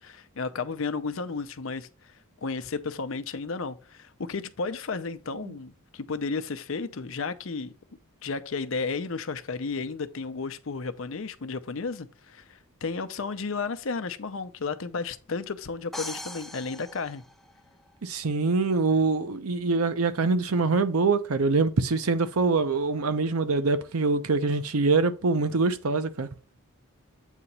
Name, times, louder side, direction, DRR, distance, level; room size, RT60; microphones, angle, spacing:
voice 1, 0.0-1.9 2.4-7.7 8.2-17.2, left 4 dB, 65° left, 0.6 m, -33 dB
sound 1, 15.9-17.9, left 1 dB, ahead, 0.3 m, -40 dB
voice 2, 18.0-26.3, right 3 dB, 85° right, 0.7 m, -24 dB
8.1 x 2.9 x 5.4 m
head